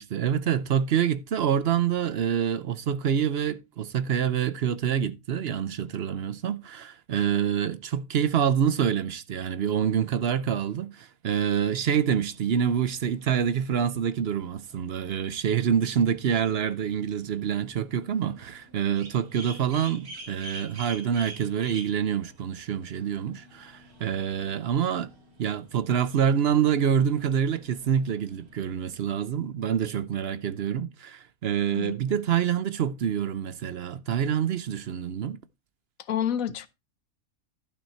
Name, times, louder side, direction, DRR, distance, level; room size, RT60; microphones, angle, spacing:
voice 1, 0.0-25.1 25.4-35.4, right 8 dB, 55° right, 0.7 m, -26 dB
sound 1, 11.6-29.2, right 2 dB, 80° right, 2.4 m, -49 dB
voice 2, 36.1-36.7, left 10 dB, 70° left, 1.2 m, -28 dB
12.0 x 6.1 x 4.3 m
omnidirectional pair, 1.5 m